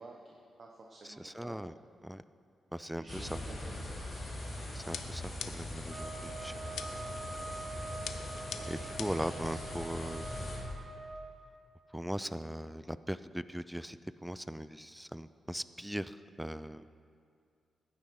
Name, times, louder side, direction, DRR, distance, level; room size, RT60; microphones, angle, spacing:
voice 1, 0.0-1.6 2.9-4.0 9.2-9.8, right 2 dB, 40° right, 0 dB, 1.1 m, -52 dB
voice 2, 1.2-1.7 2.0-2.2 2.7-3.4 4.7-6.5 8.7-10.3 11.9-14.0 14.2-16.9, equal, 5° right, 14 dB, 0.3 m, -39 dB
sound 1, 3.1-10.6, left 1 dB, 35° left, 3.8 m, -41 dB
sound 2, 4.9-5.9 6.8-7.2 8.1-9.3, left 8 dB, 85° left, 0.7 m, -43 dB
sound 3, 5.9-11.3, right 3 dB, 55° right, 1.9 m, -45 dB
15.5 x 10.5 x 4.7 m, 2.4 s
wide cardioid pair, 130°, 0 cm